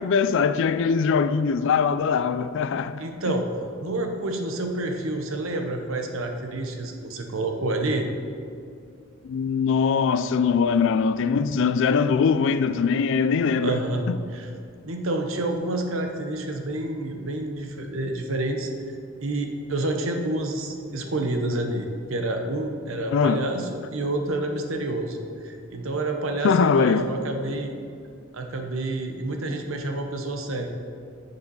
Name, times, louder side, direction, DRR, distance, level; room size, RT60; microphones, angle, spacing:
voice 1, 0.0-3.0 9.2-13.8 14.1-14.2 23.1-23.4 26.4-27.1, left 5 dB, 60° left, 0.3 m, -22 dB
voice 2, 3.0-3.5 3.8-8.1 13.6-14.0 14.3-14.5 14.8-18.7 19.2-25.2 25.4-27.7 28.3-30.7, right 2 dB, 65° right, 0.9 m, -28 dB
6.9 x 6.6 x 5.5 m
head